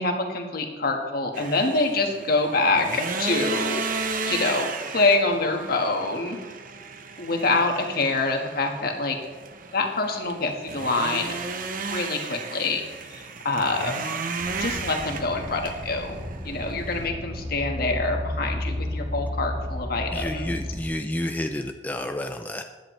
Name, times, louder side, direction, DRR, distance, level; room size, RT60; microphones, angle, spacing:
voice 1, 0.0-3.9 4.2-4.7 4.9-6.4 7.2-9.2 9.7-11.3 11.9-12.8 13.1-13.9 14.6-16.2 16.4-20.6, left 3 dB, 60° left, 3 dB, 1.6 m, -25 dB
sound 1, 1.3-17.1, right 4 dB, 50° right, 0.9 m, -34 dB
sound 2, 14.4-20.9, left 1 dB, 30° right, 1.3 m, -33 dB
voice 2, 20.1-22.6, left 1 dB, 10° left, 5 dB, 0.5 m, -30 dB
16.0 x 10.5 x 3.3 m, 1.3 s
head